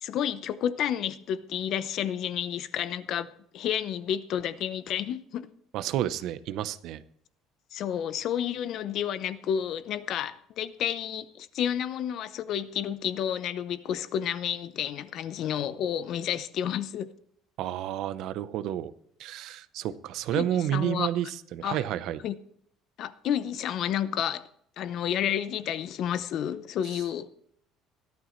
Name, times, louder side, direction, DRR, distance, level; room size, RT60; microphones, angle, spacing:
voice 1, 0.0-5.5 7.7-17.1 20.3-21.1 21.6-21.8 22.2-22.3 23.0-24.5 24.8-27.3, left 9 dB, 45° left, 14 dB, 0.7 m, -30 dB
voice 2, 5.7-7.0 17.6-18.9 19.2-22.2, right 11 dB, 55° right, 14 dB, 0.7 m, -30 dB
17.0 x 12.0 x 3.2 m, 0.67 s
cardioid pair, 175°, 0 cm